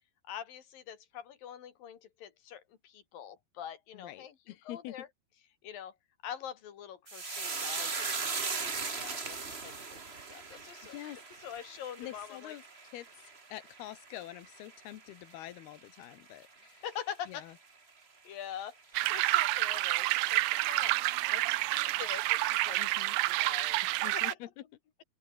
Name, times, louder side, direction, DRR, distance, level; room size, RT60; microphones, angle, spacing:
voice 1, 0.2-4.3 4.6-5.1 5.6-6.0 6.2-11.0 11.4-12.5 16.8-17.5 18.2-22.8 23.3-23.8 24.1-24.4, left 9 dB, 65° left, 4.2 m, -45 dB
voice 2, 3.9-5.0 10.8-11.2 12.0-12.6 12.9-16.8 17.3-17.5 22.8-23.2 24.0-24.5, left 14 dB, 85° left, 3.2 m, -46 dB
sound 1, 7.1-15.7 16.0-16.6 16.9-17.2, right 4 dB, 50° right, 0.7 m, -39 dB
sound 2, 18.9-24.3, right 19 dB, 85° right, 2.8 m, -29 dB
open air
omnidirectional pair, 4.5 m